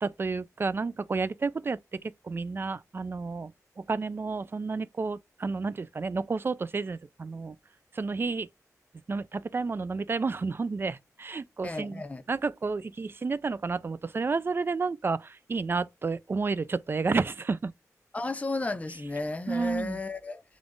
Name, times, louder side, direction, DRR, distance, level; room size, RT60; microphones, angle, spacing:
voice 1, 0.0-3.5 3.8-7.5 7.9-8.5 9.1-12.0 12.3-17.7 19.5-20.0, right 4 dB, 40° right, 0.3 m, -31 dB
voice 2, 11.6-12.2 18.1-20.4, left 2 dB, 25° left, 0.5 m, -33 dB
3.7 x 2.4 x 3.6 m
wide cardioid pair, 120°, 6 cm